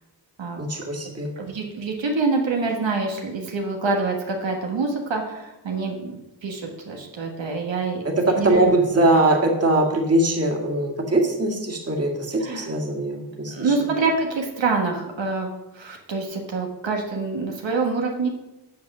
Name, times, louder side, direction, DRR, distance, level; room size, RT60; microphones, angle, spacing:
voice 1, 0.6-1.3 8.2-13.7, right 2 dB, 35° right, 0 dB, 2.0 m, -21 dB
voice 2, 1.4-8.0 8.4-8.7 12.4-12.7 13.5-18.3, right 3 dB, 85° right, 1 dB, 1.5 m, -26 dB
8.3 x 6.9 x 6.1 m, 0.97 s
wide cardioid pair, 105°, 44 cm